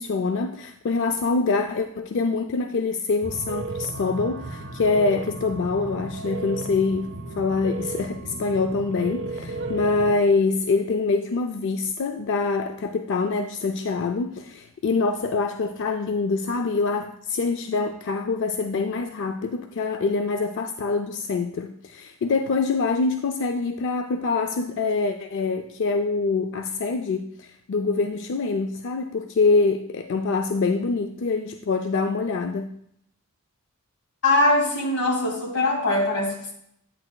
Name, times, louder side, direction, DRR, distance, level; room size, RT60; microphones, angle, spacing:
voice 1, 0.0-7.1 7.4-32.7, left 4 dB, 55° left, 7 dB, 0.4 m, -25 dB
sound 1, 3.2-10.1, right 2 dB, 55° right, 0.6 m, -34 dB
voice 2, 34.2-36.5, left 2 dB, 90° left, 0 dB, 2.1 m, -22 dB
8.7 x 8.5 x 2.2 m, 0.72 s
head